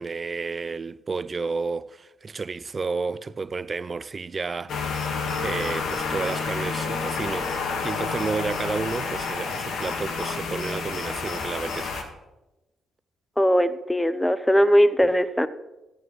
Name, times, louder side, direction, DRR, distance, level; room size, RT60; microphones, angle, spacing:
voice 1, 0.0-4.8 5.4-7.5 7.8-12.1, right 4 dB, 40° right, 0.4 m, -31 dB
sound 1, 4.7-12.0, left 5 dB, 65° left, 1.6 m, -29 dB
voice 2, 13.4-15.5, equal, 10° left, 0.7 m, -20 dB
14.5 x 9.4 x 3.2 m
hypercardioid pair, 50°, 0 cm